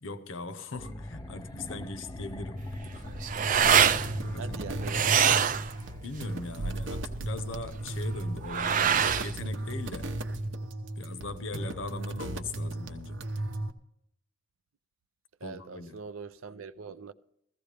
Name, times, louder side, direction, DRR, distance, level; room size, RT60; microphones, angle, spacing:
voice 1, 0.0-2.6 2.9-3.1 4.2-4.7 6.0-10.2 11.0-13.2 15.4-16.0, left 2 dB, 65° left, 0.8 m, -40 dB
sound 1, 0.7-6.0, left 1 dB, 20° left, 0.6 m, -40 dB
sound 2, 2.6-10.5, right 8 dB, 40° right, 0.4 m, -27 dB
sound 3, 3.0-13.7, right 1 dB, 65° right, 0.8 m, -36 dB
voice 2, 4.4-5.1 15.4-17.1, right 5 dB, 90° right, 0.5 m, -42 dB
15.5 x 14.5 x 3.4 m
head